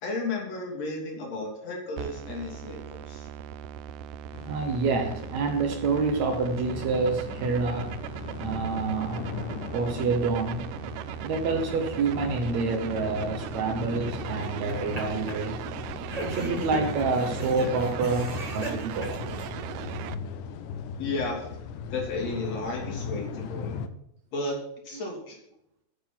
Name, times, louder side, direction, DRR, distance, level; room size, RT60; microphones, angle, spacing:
voice 1, 0.0-3.3 21.0-21.5 21.9-23.8 24.3-24.6 24.8-25.4, left 3 dB, 55° left, -1 dB, 4.0 m, -33 dB
sound 1, 2.0-20.1, right 12 dB, 85° right, 2.2 m, -38 dB
sound 2, 4.3-23.9, left 6 dB, 80° left, 2.2 m, -38 dB
voice 2, 4.4-8.0 8.4-9.3 9.7-10.7 11.2-15.7 16.2-19.5, right 4 dB, 65° right, 6 dB, 2.1 m, -28 dB
sound 3, 14.4-15.0 15.3-15.4 16.1-19.5, right 2 dB, 25° right, 0.8 m, -37 dB
10.0 x 9.1 x 5.9 m, 0.76 s
omnidirectional pair, 3.7 m